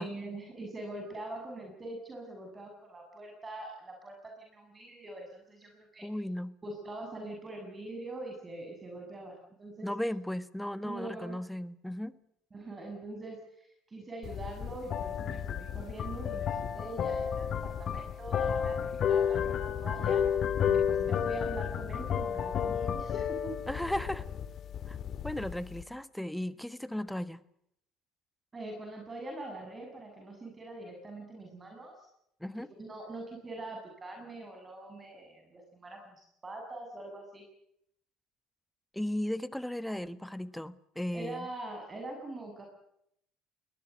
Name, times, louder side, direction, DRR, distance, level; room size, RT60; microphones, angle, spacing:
voice 1, 0.0-6.1 6.6-9.9 10.8-11.4 12.5-20.2 20.7-23.5 28.5-32.1 32.6-37.4 41.1-42.6, right 2 dB, 25° right, 2 dB, 7.1 m, -43 dB
voice 2, 6.0-6.5 9.8-12.2 23.7-24.3 24.9-25.0 25.2-27.4 32.4-32.7 38.9-41.5, left 1 dB, 5° left, 14 dB, 1.3 m, -36 dB
sound 1, 14.2-25.8, left 8 dB, 50° left, 2.2 m, -32 dB
22.0 x 20.0 x 8.1 m, 0.74 s
supercardioid pair, 80°, 0 cm